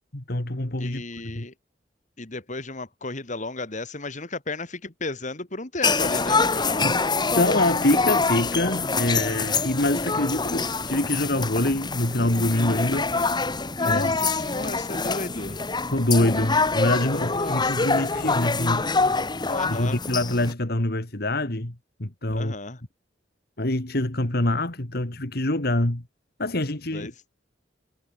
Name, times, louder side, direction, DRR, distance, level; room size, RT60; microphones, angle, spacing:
voice 1, 0.1-1.0 1.4-1.5 6.8-7.0 7.4-13.1 13.8-14.0 15.9-18.9 19.7-22.5 23.6-26.0 26.4-27.1, left 1 dB, 60° left, 2.3 m, -25 dB
voice 2, 0.8-1.5 2.2-6.9 13.8-15.6 17.1-18.5 19.5-20.0 22.3-22.8 26.9-27.2, left 2 dB, 45° left, 2.4 m, -34 dB
sound 1, 5.8-20.5, left 4 dB, 25° left, 1.4 m, -25 dB
head